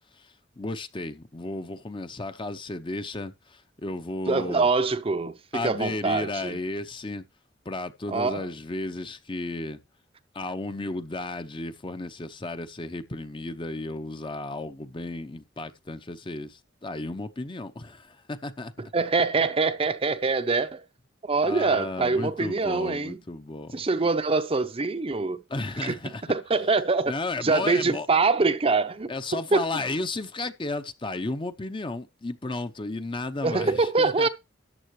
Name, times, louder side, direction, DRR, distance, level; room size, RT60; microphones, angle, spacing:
voice 1, 0.2-4.7 5.5-7.2 7.6-9.8 10.3-18.7 21.4-23.7 25.5-26.2 27.1-28.1 29.1-34.3, left 2 dB, 25° left, 0.7 m, -33 dB
voice 2, 4.3-6.6 8.1-8.5 18.9-20.8 21.2-23.2 23.7-25.4 25.8-25.9 26.3-27.1 27.4-29.6 33.4-34.3, right 3 dB, 30° right, 0.6 m, -24 dB
13.0 x 8.5 x 3.1 m
head